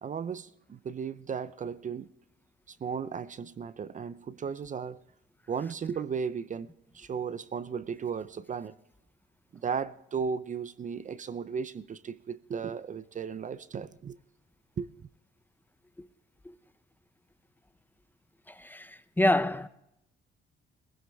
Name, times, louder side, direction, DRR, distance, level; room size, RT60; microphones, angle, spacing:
voice 1, 0.0-2.1 2.7-5.0 5.5-6.7 6.9-8.7 9.5-14.2 14.8-14.9, right 6 dB, 40° right, 0.6 m, -35 dB
voice 2, 19.2-19.7, left 1 dB, 10° left, 0.7 m, -25 dB
19.0 x 16.0 x 3.5 m
cardioid pair, 90°, 20 cm